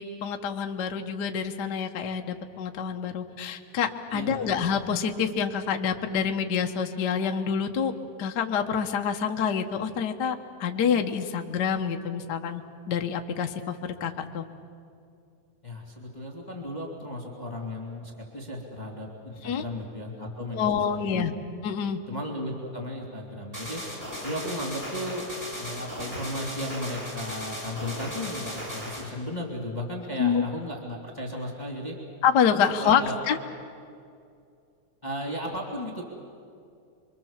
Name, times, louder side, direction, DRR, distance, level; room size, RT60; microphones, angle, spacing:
voice 1, 0.0-7.9 8.2-12.6 12.9-14.4 19.4-19.6 20.5-21.3 21.6-22.0 30.2-30.4 32.2-33.4, left 7 dB, 65° left, 4 dB, 1.0 m, -27 dB
voice 2, 4.1-4.6 15.6-21.2 22.1-23.8 24.2-25.2 25.6-32.0 32.5-33.1 35.0-36.0, left 1 dB, 15° left, -1 dB, 2.6 m, -35 dB
sound 1, 23.5-29.1, equal, 15° right, 6.3 m, -37 dB
28.5 x 23.5 x 7.4 m, 2.4 s
omnidirectional pair, 3.5 m